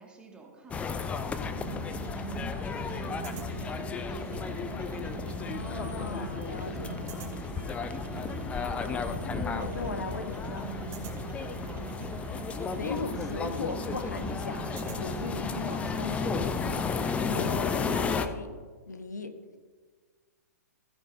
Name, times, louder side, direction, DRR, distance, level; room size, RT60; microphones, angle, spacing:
voice 1, 0.0-1.5 2.5-5.0 11.7-12.0 17.8-18.0, right 4 dB, 10° right, 0 dB, 1.9 m, -50 dB
sound 1, 0.7-18.3, left 5 dB, 15° left, 0.6 m, -33 dB
sound 2, 1.4-16.8, right 6 dB, 25° right, 2.8 m, -41 dB
voice 2, 5.4-7.1 8.9-10.8 12.7-16.6 17.3-18.6 18.9-19.6, left 3 dB, 80° left, 9 dB, 1.1 m, -39 dB
15.5 x 9.4 x 2.7 m, 1.5 s
figure-of-eight pair, 115°, 9 cm